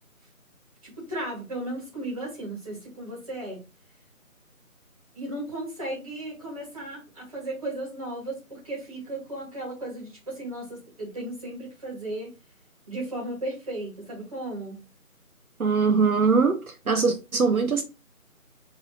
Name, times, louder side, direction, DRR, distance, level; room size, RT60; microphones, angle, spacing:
voice 1, 0.8-3.6 5.2-12.3 12.9-14.8, right 1 dB, 25° right, 2.1 m, -35 dB
voice 2, 15.6-16.6 16.9-17.8, right 5 dB, 75° right, 0.9 m, -21 dB
4.9 x 3.4 x 3.0 m
figure-of-eight pair, 165°, 43 cm